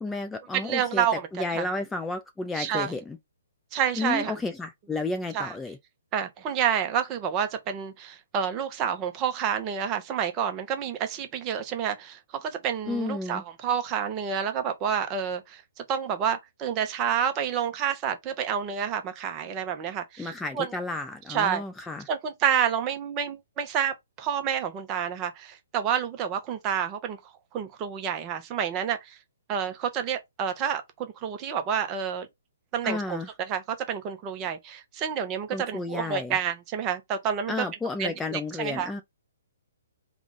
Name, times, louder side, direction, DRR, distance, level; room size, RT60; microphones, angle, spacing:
voice 1, 0.0-1.1 1.3-3.2 4.0-5.8 12.9-13.4 20.2-22.1 32.8-33.3 35.5-36.4 37.5-39.0, left 3 dB, 10° left, 0.4 m, -32 dB
voice 2, 0.5-1.7 2.5-3.0 3.7-4.3 5.3-5.5 6.1-15.6 15.9-20.7 21.3-21.6 22.1-27.2 27.5-29.2 29.5-32.3 32.7-37.5 38.0-38.9, right 8 dB, 25° right, 0.8 m, -29 dB
3.5 x 2.3 x 3.9 m
figure-of-eight pair, 130°, 0 cm